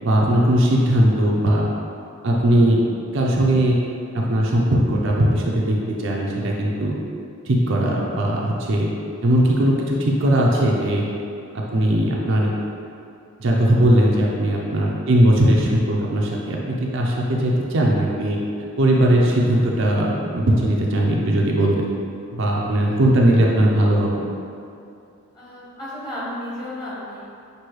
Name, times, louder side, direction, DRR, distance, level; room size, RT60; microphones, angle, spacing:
voice 1, 0.0-1.6 2.2-2.8 3.1-6.9 7.5-8.9 9.2-11.1 11.5-12.5 13.4-18.4 18.8-21.7 22.3-24.2, right 1 dB, 55° right, -2 dB, 0.5 m, -19 dB
voice 2, 22.8-23.2 25.3-27.3, left 1 dB, 20° left, -9 dB, 1.1 m, -34 dB
6.0 x 2.7 x 3.1 m, 2.6 s
head